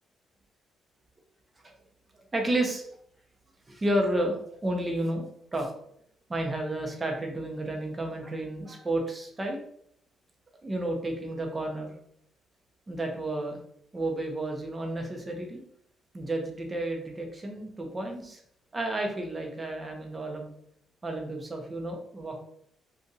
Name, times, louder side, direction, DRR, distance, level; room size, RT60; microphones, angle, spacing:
voice 1, 2.1-2.9 3.7-5.3 5.5-5.7 6.3-9.6 10.6-11.9 12.9-13.6 13.9-15.6 16.1-18.4 18.7-20.5 21.0-22.4, right 1 dB, 25° right, 2 dB, 0.8 m, -31 dB
2.6 x 2.5 x 3.9 m, 0.69 s
cardioid pair, 90°, 0 cm